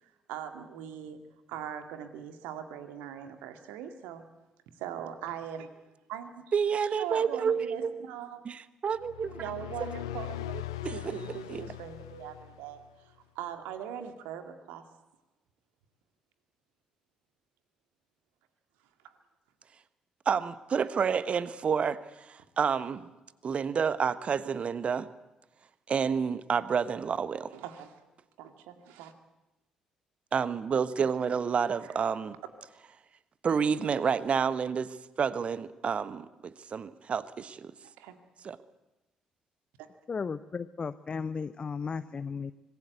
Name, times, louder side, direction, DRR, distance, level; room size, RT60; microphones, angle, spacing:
voice 1, 0.0-1.2 1.5-4.2 4.8-5.8 6.1-6.4 6.9-8.4 9.4-10.6 10.9-14.9 19.0-19.1 27.5-27.9 28.4-29.1 31.8-32.0 37.8-38.2 39.8-39.9, right 9 dB, 65° right, 9 dB, 2.2 m, -41 dB
voice 2, 6.5-8.0 8.4-9.4 10.8-11.1 11.5-11.6 20.2-23.1 23.4-25.1 25.9-27.5 30.3-32.4 33.4-37.7 38.4-38.6, right 6 dB, 40° right, 16 dB, 1.2 m, -29 dB
sound 1, 9.0-12.9, left 14 dB, 75° left, 0.8 m, -40 dB
voice 3, 40.1-42.5, left 5 dB, 35° left, 13 dB, 0.8 m, -35 dB
25.5 x 20.0 x 8.0 m, 1.0 s
figure-of-eight pair, 45°, 3 cm